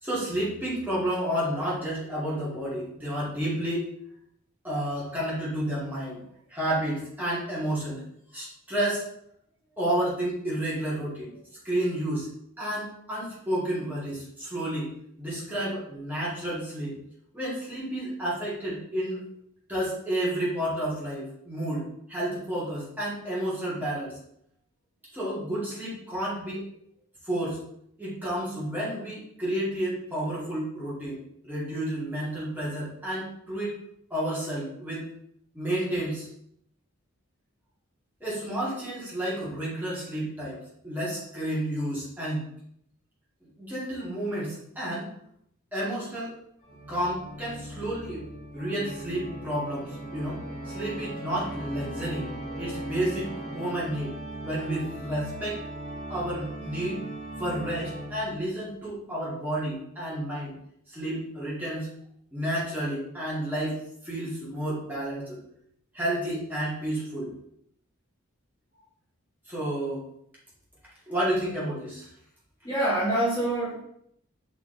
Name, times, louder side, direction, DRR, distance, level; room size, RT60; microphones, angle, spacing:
voice 1, 0.0-3.8 4.6-6.2 6.5-9.1 9.8-11.3 11.6-12.3 12.6-17.0 17.3-19.2 19.7-24.2 25.1-26.7 27.2-27.6 28.0-33.8 34.1-35.0 35.5-36.3 38.2-42.5 43.4-45.1 45.7-46.3 46.9-48.2 48.5-52.3 52.6-54.1 54.4-55.6 56.1-57.0 57.4-60.6 60.9-61.9 62.3-65.4 65.9-67.3 69.5-70.0 71.1-72.1, right 1 dB, 10° right, -8 dB, 2.1 m, -31 dB
Organ, 46.6-58.5, right 1 dB, 35° left, 1.3 m, -38 dB
voice 2, 72.6-73.8, right 1 dB, 20° left, -8 dB, 1.6 m, -26 dB
6.1 x 4.3 x 3.9 m, 0.72 s
head